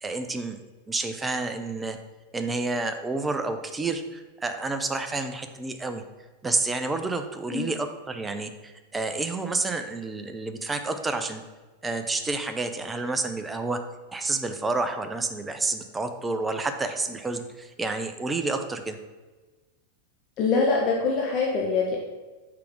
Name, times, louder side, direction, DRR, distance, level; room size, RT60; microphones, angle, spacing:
voice 1, 0.0-0.6 0.9-2.0 2.3-6.0 6.4-11.4 11.8-13.8 14.1-19.0, right 3 dB, 10° right, 7 dB, 0.7 m, -29 dB
voice 2, 20.4-22.0, left 4 dB, 35° left, -1 dB, 1.1 m, -24 dB
5.9 x 5.0 x 6.2 m, 1.3 s
figure-of-eight pair, 90°, 0 cm